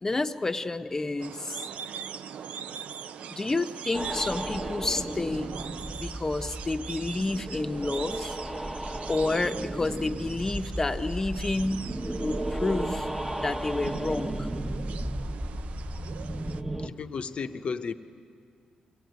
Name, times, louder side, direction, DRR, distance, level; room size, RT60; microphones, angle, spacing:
voice 1, 0.0-1.6 3.3-5.5 6.0-8.4 9.1-11.9 12.2-13.1 13.4-14.5, left 2 dB, 20° left, 9 dB, 0.8 m, -30 dB
sound 1, 1.2-16.6, right 7 dB, 75° right, 0.5 m, -42 dB
sound 2, 3.9-16.9, right 1 dB, 15° right, 1.0 m, -34 dB
voice 2, 16.8-17.9, left 5 dB, 55° left, 8 dB, 0.8 m, -34 dB
23.0 x 17.0 x 9.3 m, 2.4 s
cardioid pair, 115°, 2 cm